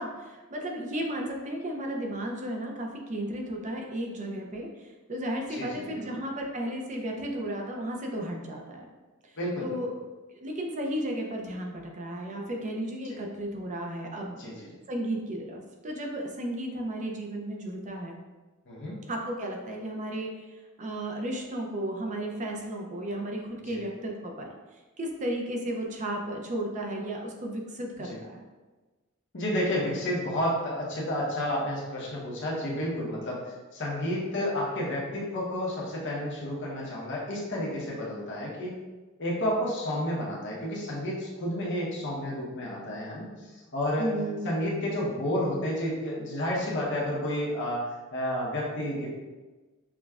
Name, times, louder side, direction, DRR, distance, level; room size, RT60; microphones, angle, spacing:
voice 1, 0.0-8.9 9.2-9.3 9.6-9.9 10.4-14.4 14.9-18.2 19.1-24.5 25.0-28.4 44.0-44.5, right 1 dB, 35° right, 1 dB, 0.5 m, -34 dB
voice 2, 5.5-6.0 9.4-9.8 13.1-13.2 14.4-14.7 18.7-19.0 23.7-23.8 28.0-28.2 29.3-38.8 39.2-44.1 44.4-49.1, left 1 dB, 60° left, -4 dB, 1.0 m, -31 dB
5.9 x 2.2 x 2.4 m, 1.2 s
head